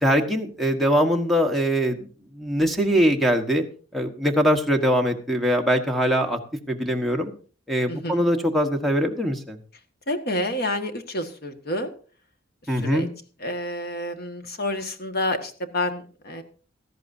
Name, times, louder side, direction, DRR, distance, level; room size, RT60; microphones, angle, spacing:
voice 1, 0.0-2.1 2.3-3.6 3.9-6.4 6.7-7.3 7.7-9.6 12.7-13.1, equal, ahead, 5 dB, 1.3 m, -22 dB
voice 2, 7.9-8.2 10.1-11.9 12.7-13.1 13.4-16.4, left 1 dB, 55° left, 6 dB, 1.7 m, -29 dB
17.0 x 13.5 x 2.7 m, 0.40 s
head